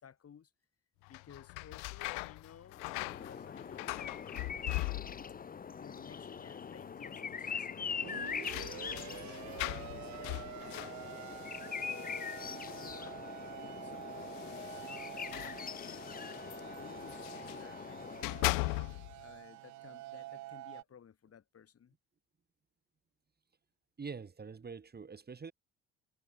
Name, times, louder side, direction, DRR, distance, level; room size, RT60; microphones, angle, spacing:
voice 1, 0.0-0.5 1.1-4.6 5.6-10.9 11.7-16.1 16.8-18.5 19.2-21.9, left 8 dB, 50° left, 4.3 m, -57 dB
sound 1, 1.0-5.5 5.7-6.4 6.7-6.8 7.9-13.3 14.2-17.7 18.1-19.2, left 36 dB, 85° left, 0.6 m, -41 dB
sound 2, 2.7-18.7, left 6 dB, 25° left, 0.8 m, -43 dB
sound 3, 6.0-6.1 8.0-20.8, right 17 dB, 60° right, 0.6 m, -48 dB
voice 2, 24.0-25.5, right 5 dB, 30° right, 1.9 m, -45 dB
supercardioid pair, 65°, 32 cm